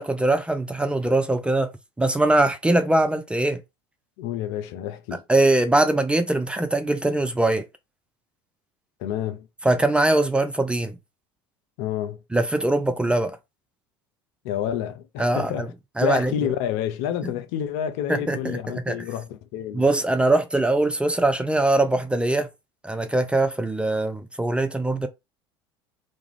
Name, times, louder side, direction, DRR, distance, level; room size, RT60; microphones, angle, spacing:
voice 1, 0.0-1.7 2.0-3.6 5.3-7.7 9.6-11.0 12.3-13.4 15.2-15.7 16.0-16.3 18.1-18.6 18.9-19.0 19.7-22.5 22.8-25.1, right 2 dB, 10° right, 0.4 m, -22 dB
voice 2, 4.2-5.2 9.0-9.5 11.8-12.2 14.4-15.7 16.0-19.9, left 10 dB, 60° left, 0.5 m, -29 dB
2.4 x 2.0 x 3.1 m
hypercardioid pair, 70°, 13 cm